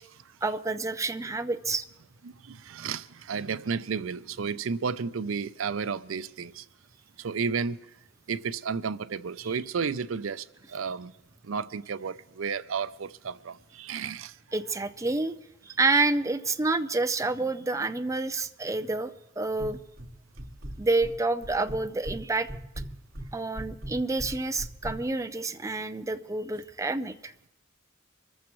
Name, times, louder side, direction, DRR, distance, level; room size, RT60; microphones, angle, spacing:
voice 1, 0.4-1.8 14.5-15.3 15.6-19.8 20.8-22.5 23.3-27.3, right 3 dB, 15° right, 0.5 m, -28 dB
voice 2, 2.2-6.6 7.2-7.8 8.3-11.1 11.4-14.4, right 5 dB, 80° right, 0.5 m, -32 dB
sound 1, 19.6-20.1 20.4-21.1 21.4-22.2 22.5-25.0, right 1 dB, 55° right, 2.4 m, -38 dB
25.5 x 14.5 x 3.1 m
head